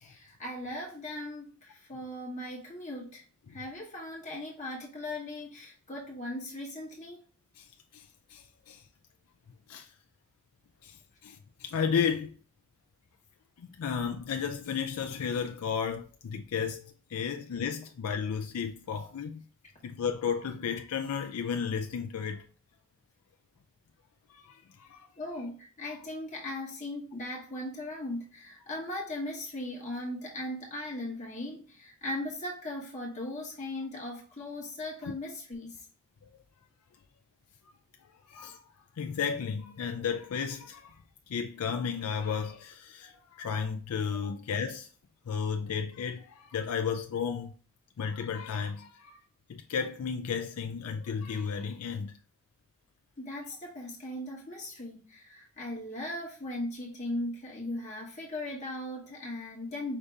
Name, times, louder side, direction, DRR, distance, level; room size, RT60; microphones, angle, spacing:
voice 1, 0.0-3.2 3.5-7.2 25.1-35.9 44.2-44.3 53.2-60.0, left 1 dB, 35° left, 1.1 m, -38 dB
voice 2, 7.9-8.8 9.7-9.9 10.8-12.3 13.6-19.4 19.8-22.4 24.3-25.1 36.2-36.3 38.3-38.6 39.0-40.9 41.3-44.9 45.3-47.5 48.0-49.2 49.5-52.2, left 6 dB, 90° left, 0.4 m, -33 dB
5.0 x 2.7 x 3.3 m
head